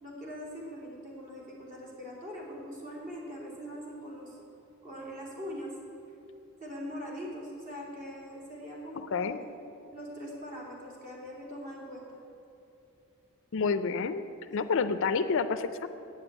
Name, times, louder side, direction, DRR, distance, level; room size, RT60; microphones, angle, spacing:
voice 1, 0.0-4.4 4.8-5.7 6.6-9.5 9.9-12.2, equal, 35° right, -4 dB, 2.9 m, -42 dB
voice 2, 13.5-14.2 14.5-15.9, left 5 dB, 60° left, 12 dB, 0.4 m, -28 dB
8.7 x 8.0 x 8.7 m, 2.9 s
head